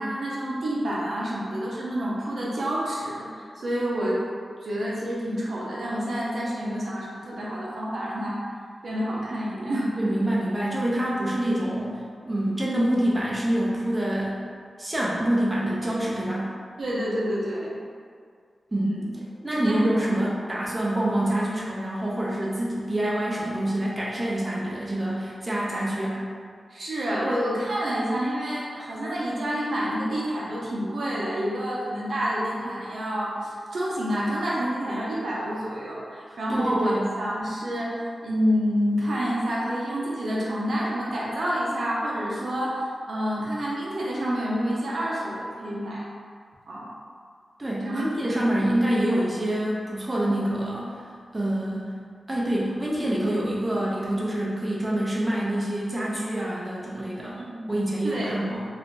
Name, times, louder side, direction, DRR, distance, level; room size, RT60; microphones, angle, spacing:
voice 1, 0.0-4.2 4.6-8.4 8.8-10.2 16.8-17.8 18.8-19.1 19.5-19.9 26.7-37.9 38.2-46.0 46.7-46.9 47.8-48.4 57.4-57.6 58.0-58.3, equal, 70° right, -6 dB, 0.6 m, -28 dB
voice 2, 10.0-14.4 14.8-16.5 18.7-19.0 19.4-26.2 36.3-37.0 47.6-51.0 51.3-51.9 52.3-57.4 57.7-58.6, right 1 dB, 20° right, -6 dB, 0.5 m, -26 dB
2.5 x 2.2 x 3.7 m, 2.1 s
wide cardioid pair, 95°, 0 cm